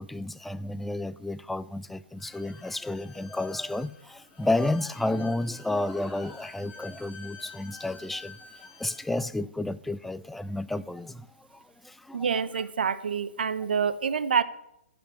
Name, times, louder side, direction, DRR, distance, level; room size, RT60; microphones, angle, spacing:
voice 1, 0.0-12.3, left 2 dB, 5° left, 0.4 m, -31 dB
Bowed string instrument, 2.2-9.1, left 5 dB, 30° left, 6.1 m, -50 dB
voice 2, 12.1-14.4, right 6 dB, 60° right, 0.9 m, -27 dB
16.0 x 5.7 x 8.9 m
figure-of-eight pair, 125°, 6 cm